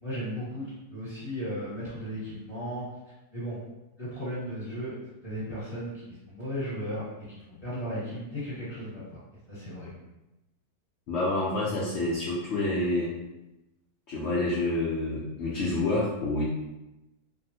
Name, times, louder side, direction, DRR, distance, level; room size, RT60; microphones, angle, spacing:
voice 1, 0.0-2.8 3.3-3.6 4.0-4.9 5.2-9.2 9.5-9.9, equal, 25° left, -11 dB, 1.3 m, -35 dB
voice 2, 11.1-13.1 14.1-16.4, left 2 dB, 65° left, -6 dB, 0.7 m, -28 dB
3.3 x 2.1 x 2.7 m, 0.97 s
omnidirectional pair, 1.7 m